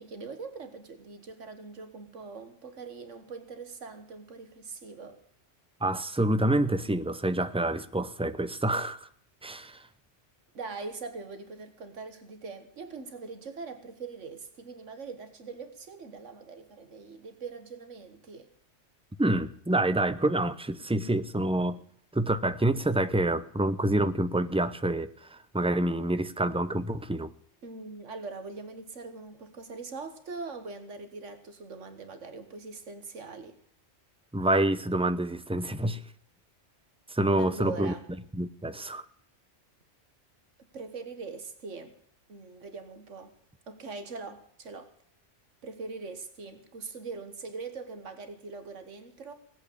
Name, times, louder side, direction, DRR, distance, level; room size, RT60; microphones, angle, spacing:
voice 1, 0.0-5.2 9.7-9.8 10.5-18.5 27.6-33.6 37.4-38.0 40.7-41.9 42.3-43.4 43.7-44.9 45.6-49.3, right 4 dB, 85° right, 1.8 m, -42 dB
voice 2, 5.8-9.1 9.4-9.8 19.2-21.8 22.1-27.3 34.3-36.0 37.1-37.9 38.4-39.0, right 1 dB, 5° right, 0.6 m, -27 dB
18.5 x 8.2 x 8.5 m
omnidirectional pair, 1.2 m